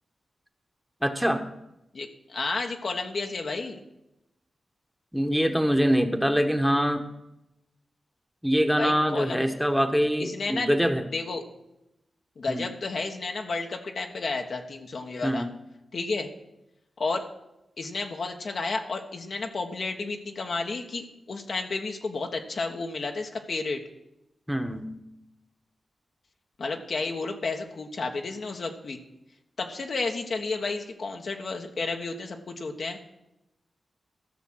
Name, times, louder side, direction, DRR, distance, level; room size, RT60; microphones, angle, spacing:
voice 1, 1.0-1.5 5.1-7.0 8.4-11.1 12.5-12.7 15.2-15.5 24.5-24.9, equal, 5° right, 6 dB, 1.2 m, -24 dB
voice 2, 1.9-3.8 8.8-9.5 10.2-10.7 11.1-11.4 12.4-15.5 15.9-16.3 17.0-17.3 17.8-23.8 26.6-29.0 29.6-33.0, left 3 dB, 65° left, 3 dB, 1.2 m, -32 dB
13.5 x 6.2 x 6.1 m, 0.89 s
cardioid pair, 50°, 0 cm